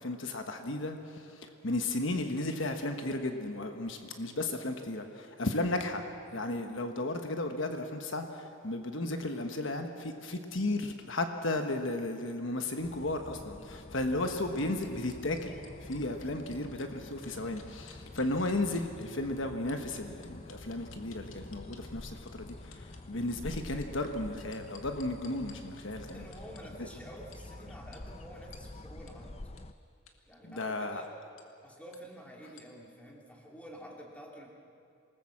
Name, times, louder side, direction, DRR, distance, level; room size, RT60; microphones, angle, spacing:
voice 1, 0.0-6.1 6.3-15.6 15.8-26.2 26.8-26.9 30.4-31.0, left 2 dB, 65° left, 5 dB, 1.3 m, -34 dB
sound 1, 12.8-29.7, left 2 dB, 30° left, 0.6 m, -48 dB
sound 2, 14.3-16.9 17.2-19.0 19.7-21.8 22.3-23.0 23.5-25.5 26.1-26.6 27.3-27.4 27.9-28.0 28.5-28.6 29.1-29.2 29.6-29.7 30.1-30.2 30.5-30.7 31.4-31.5 31.9-32.0 32.6-32.7, left 7 dB, 80° left, 2.2 m, -55 dB
voice 2, 26.1-29.3 30.3-31.1 31.6-34.5, equal, 5° left, -1 dB, 2.6 m, -49 dB
27.5 x 19.5 x 7.4 m, 2.5 s
head